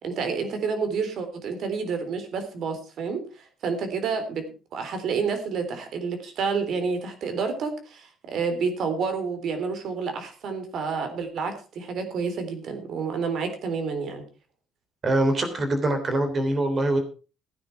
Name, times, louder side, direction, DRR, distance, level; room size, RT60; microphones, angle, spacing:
voice 1, 0.0-14.2, right 5 dB, 60° right, 8 dB, 3.6 m, -29 dB
voice 2, 15.0-17.0, right 1 dB, 30° right, 7 dB, 3.4 m, -23 dB
15.5 x 9.5 x 4.6 m, 0.34 s
cardioid pair, 155°, 0 cm